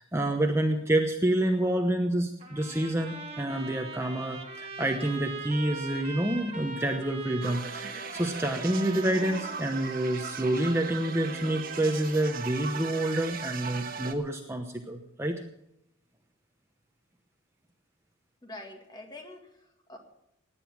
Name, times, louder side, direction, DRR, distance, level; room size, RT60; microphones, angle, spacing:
voice 1, 0.0-15.4, right 1 dB, 15° right, 3 dB, 0.9 m, -28 dB
Trumpet, 2.4-11.1, right 3 dB, 30° right, 1.7 m, -42 dB
sound 1, 7.4-14.1, right 5 dB, 45° right, 1.3 m, -38 dB
voice 2, 18.4-20.0, left 1 dB, 20° left, 3 dB, 2.0 m, -45 dB
17.5 x 10.0 x 6.0 m, 0.81 s
head